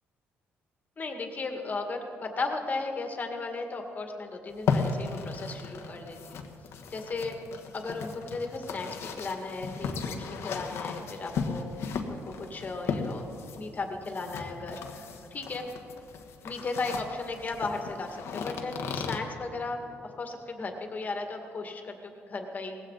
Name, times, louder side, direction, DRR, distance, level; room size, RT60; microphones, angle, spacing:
voice 1, 1.0-6.4 6.9-7.3 7.7-11.7 12.1-13.3 13.6-15.7 16.4-19.8 20.2-22.8, left 3 dB, 35° left, 4 dB, 2.0 m, -35 dB
sound 1, 4.5-19.2, left 5 dB, 70° left, 1.4 m, -35 dB
18.5 x 16.0 x 4.1 m, 2.6 s
cardioid pair, 95°, 5 cm